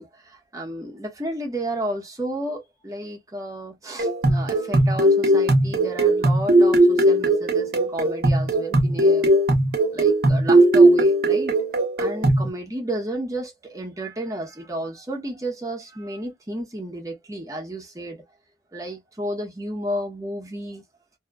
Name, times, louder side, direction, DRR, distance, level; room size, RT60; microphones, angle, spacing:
voice 1, 0.0-9.3 9.9-11.6 12.0-18.2 18.7-20.8, right 1 dB, 20° right, 0.9 m, -32 dB
sound 1, 4.0-12.5, right 1 dB, 55° right, 0.7 m, -18 dB
2.7 x 2.3 x 2.3 m
head